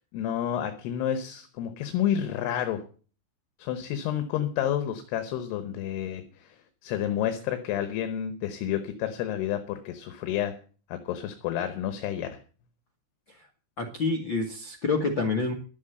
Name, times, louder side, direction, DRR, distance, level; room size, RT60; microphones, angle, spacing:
voice 1, 0.1-2.8 3.6-10.6 10.9-12.4, left 10 dB, 75° left, 8 dB, 3.1 m, -30 dB
voice 2, 13.8-15.5, left 3 dB, 60° left, 3 dB, 1.2 m, -28 dB
12.5 x 8.0 x 7.8 m, 0.39 s
omnidirectional pair, 4.9 m